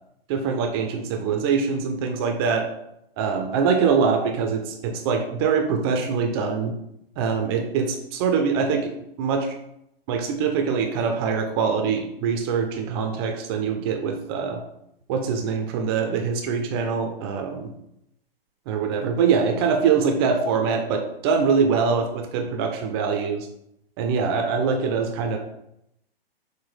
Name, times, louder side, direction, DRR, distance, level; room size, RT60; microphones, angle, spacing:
voice 1, 0.3-2.7 3.2-6.7 7.2-8.9 9.2-9.5 10.1-14.6 15.1-17.7 18.7-23.5 24.0-25.4, right 5 dB, 25° right, 3 dB, 0.4 m, -23 dB
5.9 x 2.1 x 3.2 m, 0.81 s
figure-of-eight pair, 115°, 30 cm